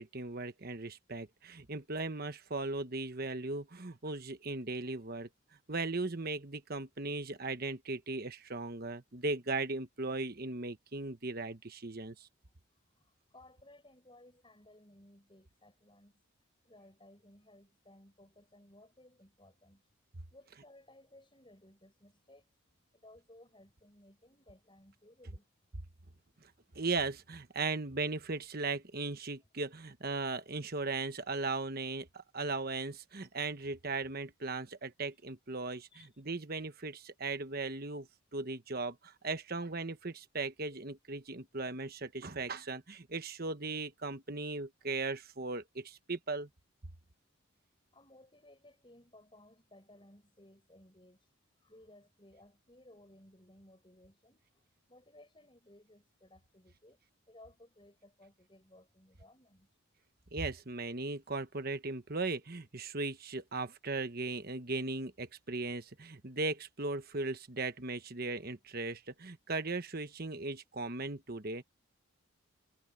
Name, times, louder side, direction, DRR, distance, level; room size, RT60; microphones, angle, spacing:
voice 1, 0.0-5.3 5.7-12.3 26.7-38.1 38.3-46.5 60.3-71.6, right 3 dB, 45° right, 1.2 m, -37 dB
voice 2, 13.3-16.2 16.6-19.8 20.3-22.5 22.9-25.4 33.3-33.4 35.9-36.1 47.9-51.3 51.6-54.6 54.9-57.0 57.3-59.7, left 1 dB, 25° left, 7.1 m, -60 dB
head